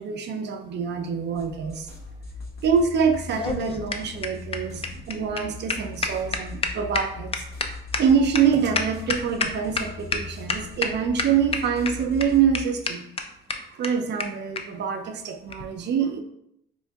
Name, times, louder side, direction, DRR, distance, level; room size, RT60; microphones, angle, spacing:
voice 1, 0.0-1.9 2.6-7.3 8.0-13.0 13.7-16.2, right 7 dB, 60° right, 5 dB, 0.5 m, -25 dB
sound 1, 1.4-12.7, left 3 dB, 55° left, 0.8 m, -40 dB
sound 2, 3.1-9.8 10.1-10.2 10.5-10.9 11.2-11.9 12.2-12.3 12.5-12.6 12.9-13.0 13.2-13.3 13.5-13.6 13.8-13.9 14.2-14.3 14.6-14.7 15.5-15.6, left 4 dB, 30° left, 0.4 m, -27 dB
4.5 x 2.5 x 2.3 m, 0.77 s
cardioid pair, 90°, 20 cm